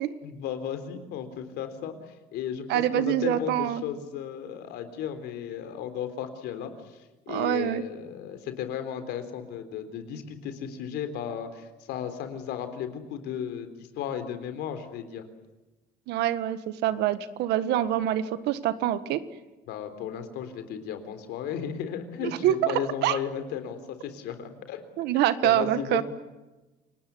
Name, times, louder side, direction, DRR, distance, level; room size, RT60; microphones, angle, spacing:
voice 1, 0.2-7.0 7.3-13.7 14.0-15.2 19.7-24.8 25.4-26.0, left 8 dB, 80° left, 9 dB, 3.8 m, -35 dB
voice 2, 2.7-3.8 7.3-7.8 16.1-19.2 22.2-23.2 25.0-26.0, right 12 dB, 80° right, 13 dB, 1.6 m, -25 dB
28.5 x 19.5 x 9.6 m, 1.1 s
cardioid pair, 110°, 17 cm